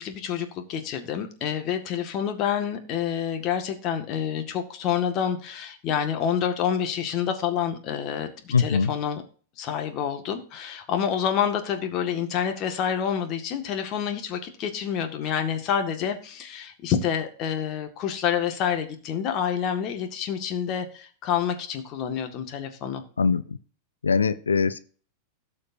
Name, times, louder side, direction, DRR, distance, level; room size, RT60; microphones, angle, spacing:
voice 1, 0.0-9.2 9.6-23.0, left 8 dB, 45° left, 7 dB, 2.0 m, -28 dB
voice 2, 8.5-8.9 23.2-23.6 24.0-24.8, left 5 dB, 85° left, 13 dB, 0.6 m, -22 dB
17.0 x 6.5 x 2.8 m, 0.41 s
hypercardioid pair, 95°, 0 cm